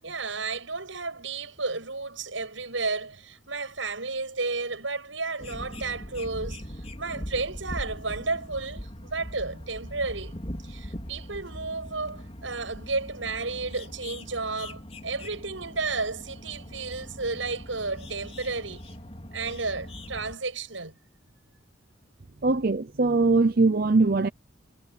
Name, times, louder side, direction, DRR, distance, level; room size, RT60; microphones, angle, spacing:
voice 1, 0.0-10.3 10.6-18.8 19.3-20.9, right 3 dB, 90° right, 7.9 m, -32 dB
sound 1, 5.4-20.3, equal, 35° left, 4.3 m, -41 dB
voice 2, 22.4-24.3, right 3 dB, 50° right, 0.7 m, -21 dB
head